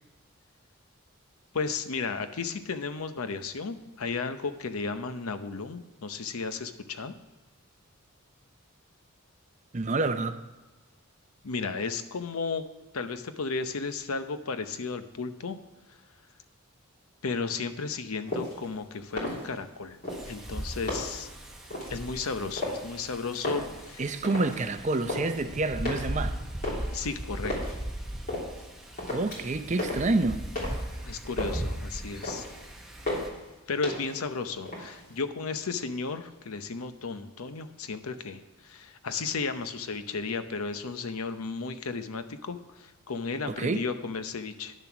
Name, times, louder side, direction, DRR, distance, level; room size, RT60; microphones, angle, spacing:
voice 1, 1.5-7.1 11.4-12.6 12.9-15.6 15.9-16.0 17.2-20.0 20.2-21.3 21.9-24.1 26.9-27.8 31.0-32.4 33.7-44.7, left 4 dB, 85° left, 0.8 m, -34 dB
voice 2, 9.7-10.4 24.0-26.4 29.1-30.5 43.5-43.9, right 2 dB, 35° right, 0.6 m, -28 dB
sound 1, 18.3-18.7 19.1-19.7 20.0-21.3 21.7-22.0 22.5-23.1 23.3-24.6 24.9-25.4 25.9-27.8 28.3-28.7 29.0-29.5 29.8-31.0 31.2-31.8 32.1-32.6 33.1-33.5 33.8-34.3 34.6-35.2, left 1 dB, 45° left, 3.1 m, -34 dB
Wind, 20.1-33.3, right 1 dB, ahead, 1.0 m, -38 dB
10.5 x 7.2 x 5.9 m
head